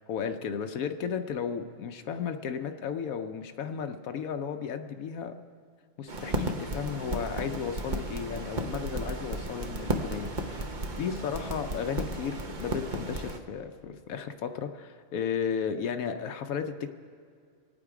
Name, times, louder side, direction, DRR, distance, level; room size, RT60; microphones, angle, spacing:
voice 1, 0.0-5.3 6.0-16.9, left 7 dB, 75° left, 7 dB, 1.1 m, -34 dB
sound 1, 6.1-13.4, right 1 dB, 35° right, 0.9 m, -34 dB
26.0 x 8.9 x 4.8 m, 2.2 s
omnidirectional pair, 1.5 m